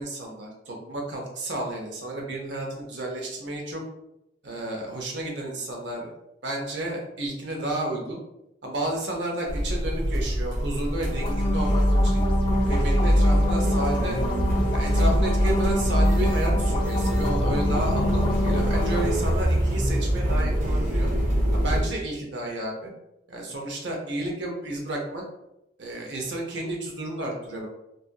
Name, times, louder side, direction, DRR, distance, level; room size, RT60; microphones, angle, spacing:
voice 1, 0.0-3.8 4.4-6.1 6.4-8.2 8.6-12.3 12.7-14.2 14.7-21.1 21.5-22.9 23.3-25.2 25.8-27.7, right 1 dB, 70° right, 0 dB, 0.7 m, -32 dB
sound 1, 9.5-21.8, equal, 50° right, 0.9 m, -23 dB
sound 2, 11.1-19.1, left 2 dB, 30° left, 0.4 m, -28 dB
2.7 x 2.4 x 2.2 m, 0.85 s
head